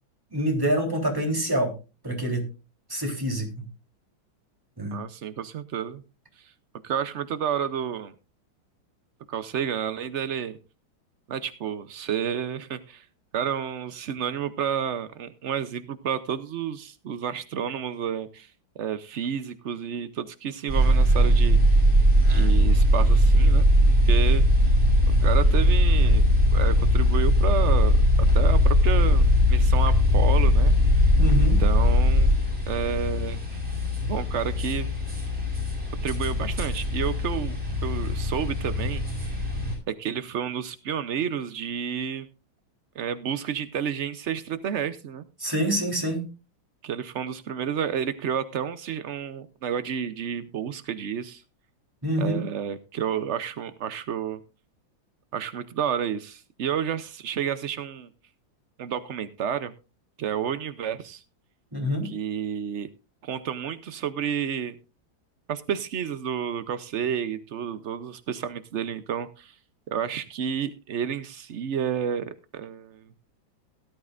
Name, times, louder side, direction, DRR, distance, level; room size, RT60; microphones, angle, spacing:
voice 1, 0.3-1.7 2.0-2.4 2.9-3.5 4.8-5.0 31.2-31.6 45.4-46.3 52.0-52.4 61.7-62.1, right 1 dB, 10° right, 1 dB, 3.5 m, -26 dB
voice 2, 4.9-6.0 6.4-6.5 6.8-8.1 9.3-10.6 11.3-13.1 13.3-18.5 18.8-21.6 22.3-23.6 24.0-24.4 25.2-26.2 26.5-28.0 28.3-31.1 31.4-32.3 32.7-33.4 34.1-34.9 36.0-37.6 37.8-39.4 39.9-42.3 42.9-45.2 46.8-51.4 52.2-54.4 55.3-58.1 58.8-59.7 60.2-61.2 62.0-62.9 63.2-64.7 65.5-69.5 69.9-73.1, right 8 dB, 80° right, 12 dB, 0.6 m, -30 dB
sound 1, 20.7-39.8, equal, 30° right, 8.0 m, -20 dB
17.5 x 12.0 x 2.5 m, 0.31 s
omnidirectional pair, 2.2 m